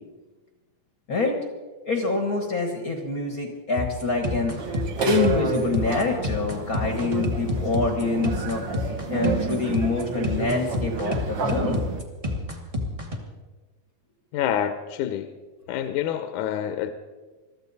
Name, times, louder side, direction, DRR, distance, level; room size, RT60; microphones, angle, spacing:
voice 1, 1.8-4.6 5.0-8.6 9.1-11.8, left 3 dB, 45° left, 3 dB, 1.1 m, -26 dB
sound 1, 3.8-13.2, left 2 dB, 25° right, 0.7 m, -29 dB
sound 2, 4.6-12.0, right 5 dB, 50° right, 1.5 m, -30 dB
voice 2, 14.3-15.3 15.7-16.9, left 10 dB, 80° left, 9 dB, 2.2 m, -27 dB
22.5 x 13.5 x 4.1 m, 1.3 s
omnidirectional pair, 3.5 m